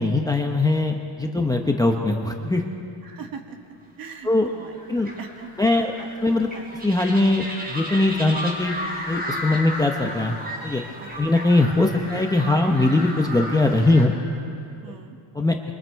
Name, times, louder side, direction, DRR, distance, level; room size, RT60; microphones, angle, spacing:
voice 1, 0.0-2.6 4.2-4.5 4.9-5.1 5.6-5.9 6.2-6.5 6.8-8.8 9.1-10.4 10.6-10.8 11.2-14.1 15.3-15.6, left 2 dB, 10° left, 3 dB, 0.8 m, -21 dB
voice 2, 3.0-3.6 4.0-6.7 11.0-11.1 14.8-15.2, right 5 dB, 45° right, 5 dB, 1.8 m, -41 dB
sound 1, 4.3-14.1, equal, 20° right, 3.7 m, -34 dB
26.0 x 23.5 x 4.6 m, 2.5 s
cardioid pair, 165°, 48 cm